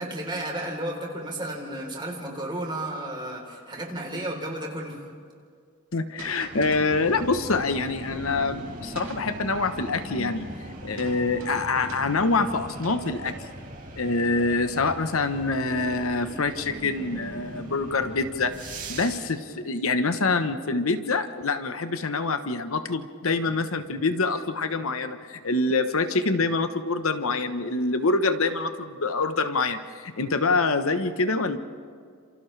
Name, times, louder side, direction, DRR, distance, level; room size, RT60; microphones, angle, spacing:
voice 1, 0.0-5.1, right 1 dB, 20° right, 0 dB, 3.8 m, -33 dB
voice 2, 5.9-10.5 10.8-13.3 14.0-31.6, left 3 dB, 70° left, 9 dB, 1.1 m, -26 dB
sound 1, 6.2-7.2 8.6-9.5 10.7-13.9 14.2-14.5 15.7-15.8 16.8-16.9 17.5-18.0, right 3 dB, 65° right, 2.1 m, -46 dB
sound 2, 6.5-19.2, right 1 dB, 40° right, 4.1 m, -39 dB
29.0 x 27.5 x 3.4 m, 2.1 s
head